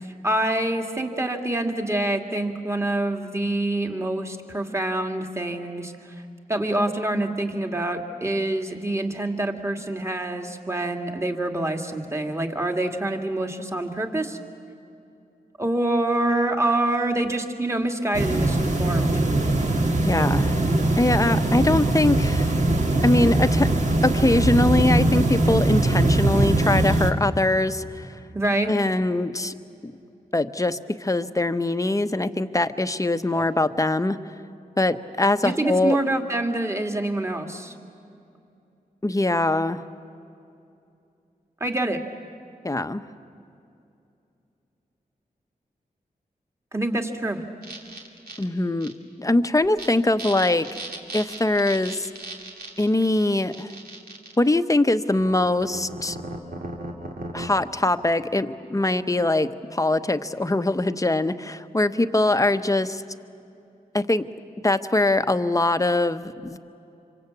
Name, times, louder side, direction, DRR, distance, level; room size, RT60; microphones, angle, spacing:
voice 1, 0.2-5.9 6.5-14.4 15.6-19.2 28.3-28.7 33.3-33.4 35.4-37.7 41.6-42.0 46.7-47.4, right 1 dB, 20° right, 3 dB, 2.3 m, -26 dB
sound 1, 18.1-27.1, right 2 dB, 50° right, 2.1 m, -21 dB
voice 2, 20.0-20.6 21.0-22.5 23.0-23.7 24.0-28.1 28.7-29.5 30.3-34.2 34.8-36.0 39.0-39.8 42.6-43.0 48.4-48.9 49.2-50.8 51.1-52.1 52.8-53.7 54.4-56.2 57.3-63.0 63.9-64.3 64.6-66.6, left 2 dB, 20° left, 10 dB, 1.0 m, -22 dB
sound 2, 47.6-48.4 48.8-48.9 49.6-49.9 50.2-54.3 55.2-57.5, right 2 dB, 85° right, 2.7 m, -37 dB
26.5 x 24.5 x 8.4 m, 2.6 s
cardioid pair, 55°, 15 cm